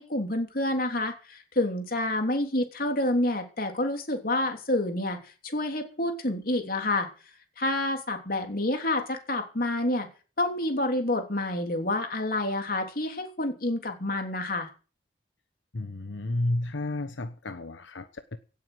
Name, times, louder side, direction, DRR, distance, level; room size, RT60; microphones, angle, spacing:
voice 1, 0.0-7.1 7.6-10.1 10.4-14.7, left 1 dB, 50° left, 4 dB, 3.4 m, -28 dB
voice 2, 15.7-18.4, left 1 dB, 90° left, 9 dB, 1.1 m, -32 dB
17.0 x 8.3 x 7.9 m, 0.37 s
head